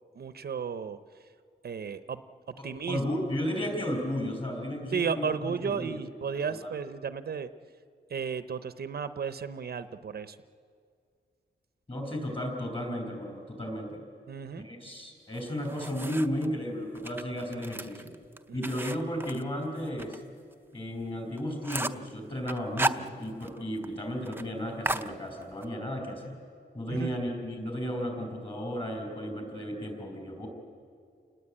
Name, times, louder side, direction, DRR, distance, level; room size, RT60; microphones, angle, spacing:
voice 1, 0.2-1.0 1.6-2.2 2.6-3.0 4.9-7.5 8.1-10.4 14.3-14.7 18.6-18.7 26.9-27.2, right 6 dB, 60° right, 11 dB, 0.7 m, -34 dB
voice 2, 2.6-6.0 6.3-6.7 11.9-14.0 14.6-18.1 18.5-20.2 20.7-26.4 26.7-30.5, equal, 30° left, 3 dB, 5.3 m, -34 dB
sound 1, 15.3-16.5 16.9-20.2 20.5-20.6 21.0-21.1 21.4-22.1 22.5-23.6 23.8-23.9 24.2-24.5 24.8-25.7, right 2 dB, 10° right, 0.6 m, -34 dB
29.0 x 19.5 x 8.7 m, 2.3 s
wide cardioid pair, 160°, 19 cm